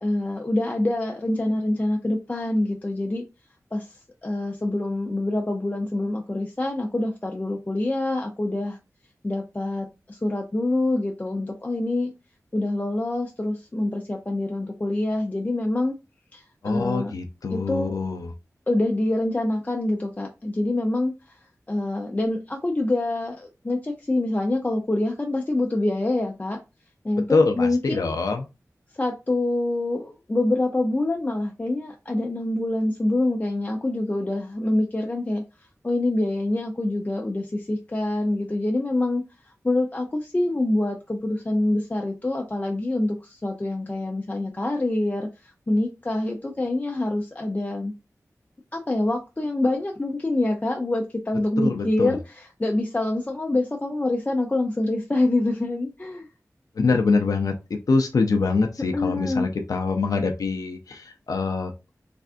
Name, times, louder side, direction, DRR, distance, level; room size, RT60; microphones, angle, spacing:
voice 1, 0.0-3.2 3.7-8.8 9.2-12.1 12.5-15.9 16.3-17.1 17.5-18.0 18.7-21.4 21.7-26.6 27.0-28.1 28.9-35.4 35.8-47.9 48.7-56.3 58.9-59.5, left 2 dB, 25° left, 2 dB, 0.4 m, -26 dB
voice 2, 16.6-18.3 27.3-28.4 51.6-52.2 56.8-61.7, left 4 dB, 90° left, 4 dB, 0.5 m, -24 dB
3.3 x 2.4 x 2.5 m, 0.26 s
wide cardioid pair, 85°, 6 cm